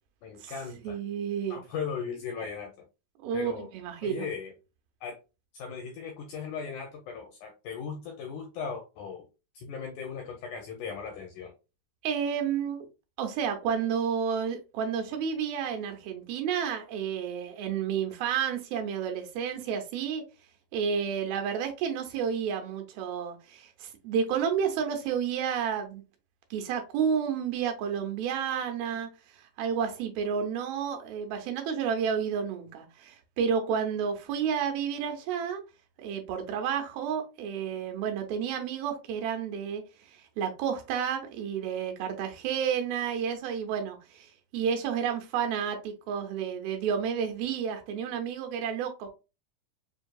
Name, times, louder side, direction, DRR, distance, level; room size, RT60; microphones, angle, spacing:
voice 1, 0.2-1.0 1.5-2.7 3.3-3.7 4.0-4.5 5.0-5.2 5.5-9.3 9.5-11.5, left 6 dB, 80° left, 1.8 m, -37 dB
voice 2, 0.8-1.6 3.2-4.3 12.0-12.8 13.2-20.2 20.7-26.0 26.5-29.1 29.6-35.6 36.0-39.8 40.1-49.1, right 7 dB, 85° right, 2.7 m, -31 dB
6.2 x 2.6 x 2.3 m
omnidirectional pair, 4.2 m